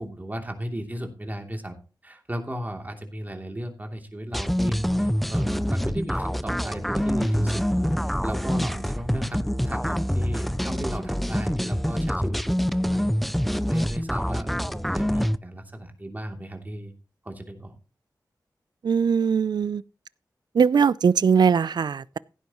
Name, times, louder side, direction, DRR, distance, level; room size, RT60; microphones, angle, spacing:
voice 1, 0.0-1.8 2.0-7.6 7.9-12.6 12.9-13.1 13.7-16.9 17.2-17.8, equal, 25° right, 2.9 m, -35 dB
sound 1, 4.3-15.4, equal, ahead, 0.5 m, -25 dB
voice 2, 18.8-19.8 20.5-22.2, right 6 dB, 75° right, 0.4 m, -20 dB
15.5 x 9.4 x 3.0 m
wide cardioid pair, 80°, 7 cm